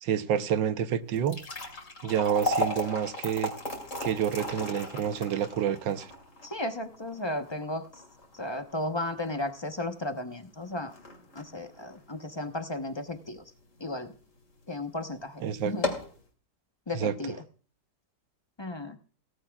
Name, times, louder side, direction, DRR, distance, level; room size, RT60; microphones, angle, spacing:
voice 1, 0.0-1.4 2.0-3.5 4.0-6.1 15.4-15.7 16.9-17.1, right 9 dB, 85° right, 1.6 m, -28 dB
sound 1, 1.1-13.4 13.8-13.9 14.6-14.8 15.1-15.2 15.6-16.2, left 1 dB, 45° left, 2.9 m, -36 dB
voice 2, 6.4-7.8 8.4-10.9 11.4-13.4 13.8-14.1 14.7-15.9 16.9-17.4 18.6-19.0, left 1 dB, 25° left, 0.7 m, -34 dB
17.5 x 15.0 x 2.3 m
omnidirectional pair, 1.9 m